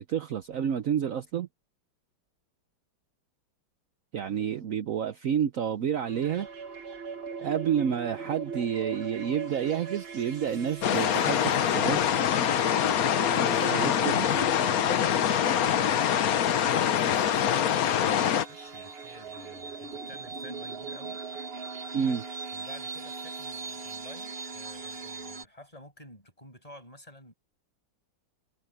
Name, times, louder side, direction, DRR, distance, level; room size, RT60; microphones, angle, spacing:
voice 1, 0.1-1.5 4.1-6.5 7.4-12.0 13.7-14.3 21.9-22.2, right 8 dB, 65° right, 0.8 m, -29 dB
sound 1, 6.0-25.5, right 4 dB, 35° right, 1.2 m, -40 dB
sound 2, 10.8-18.5, left 9 dB, 60° left, 1.0 m, -24 dB
voice 2, 13.3-21.2 22.5-27.3, left 1 dB, 15° left, 7.8 m, -51 dB
omnidirectional pair, 2.4 m